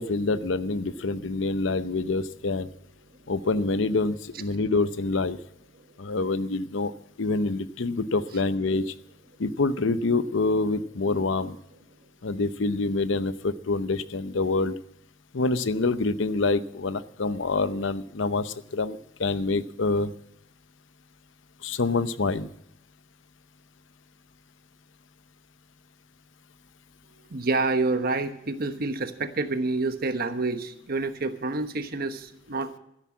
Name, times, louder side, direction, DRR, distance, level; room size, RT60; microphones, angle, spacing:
voice 1, 0.0-2.7 3.3-5.4 6.0-6.9 7.2-8.9 9.4-11.6 12.2-14.8 15.3-20.1 21.6-22.5, left 3 dB, 70° left, 14 dB, 0.7 m, -26 dB
voice 2, 27.3-32.8, right 3 dB, 50° right, 9 dB, 1.1 m, -28 dB
13.0 x 10.5 x 7.3 m, 0.77 s
head